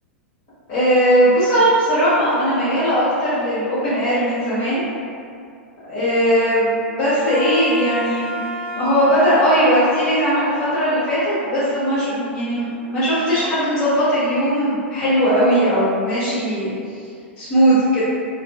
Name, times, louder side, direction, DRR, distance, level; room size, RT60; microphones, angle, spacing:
voice 1, 0.7-4.8 5.9-8.4 8.7-16.7 17.4-18.0, equal, 40° left, -13 dB, 1.0 m, -18 dB
Wind instrument woodwind instrument, 7.3-12.3, left 1 dB, 70° right, 0.5 m, -32 dB
3.4 x 2.6 x 2.3 m, 2.4 s
figure-of-eight pair, 95°, 7 cm